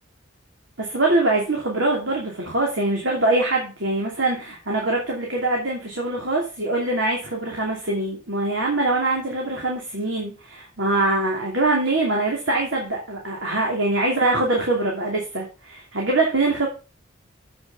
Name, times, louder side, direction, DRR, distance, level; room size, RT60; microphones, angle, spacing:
voice 1, 0.8-16.7, right 2 dB, 70° right, -1 dB, 2.8 m, -23 dB
8.0 x 6.2 x 6.0 m, 0.33 s
head